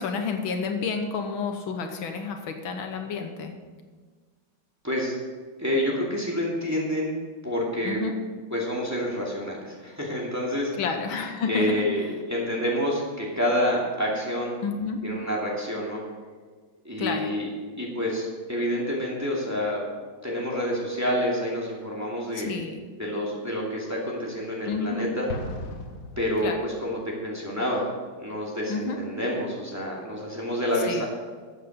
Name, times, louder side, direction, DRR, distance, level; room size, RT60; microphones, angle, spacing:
voice 1, 0.0-3.6 7.8-8.1 10.8-11.8 14.6-15.0 17.0-17.3 22.3-22.8 24.7-25.1 26.4-26.6 28.7-29.0 30.9-31.0, left 5 dB, 80° left, 6 dB, 1.8 m, -30 dB
voice 2, 4.8-5.1 5.6-7.2 7.4-8.0 8.5-10.7 11.5-14.5 15.0-16.0 16.8-17.5 17.8-19.8 20.2-22.5 23.0-25.3 26.2-31.1, equal, 10° right, -4 dB, 2.3 m, -28 dB
Explosion, 25.3-27.0, left 2 dB, 50° left, 1.2 m, -37 dB
13.0 x 8.0 x 5.3 m, 1.5 s
omnidirectional pair, 2.2 m